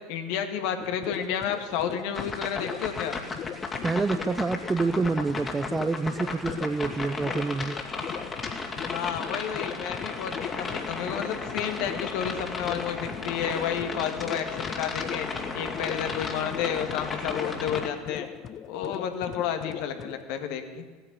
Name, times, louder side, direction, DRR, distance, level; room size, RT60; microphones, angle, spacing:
voice 1, 0.1-3.1 8.9-15.3 15.5-18.3 18.7-20.8, left 8 dB, 65° left, 6 dB, 1.9 m, -31 dB
sound 1, 0.8-20.2, left 9 dB, 40° left, 0.7 m, -40 dB
sound 2, 2.2-17.9, left 4 dB, 25° left, 2.7 m, -35 dB
voice 2, 3.8-7.8, right 4 dB, 20° right, 15 dB, 0.6 m, -27 dB
16.5 x 10.0 x 8.5 m, 1.5 s
hypercardioid pair, 80°, 0 cm